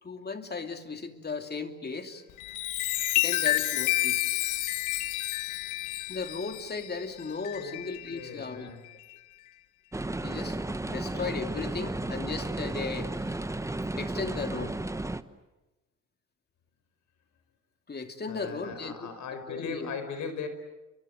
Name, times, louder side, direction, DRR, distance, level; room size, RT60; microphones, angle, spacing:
voice 1, 0.0-2.2 3.2-4.2 6.1-8.7 10.2-13.4 14.0-14.8 17.9-19.1 19.5-19.9, left 4 dB, 35° left, 6 dB, 2.8 m, -36 dB
Chime, 2.3-8.3 8.8-9.1, left 16 dB, 90° left, 0.9 m, -30 dB
voice 2, 8.1-8.8 11.8-12.2 18.3-20.5, left 5 dB, 70° left, 9 dB, 5.2 m, -39 dB
sound 1, 9.9-15.2, right 2 dB, 10° right, 1.0 m, -33 dB
30.0 x 23.5 x 8.1 m, 1.1 s
cardioid pair, 90°, 30 cm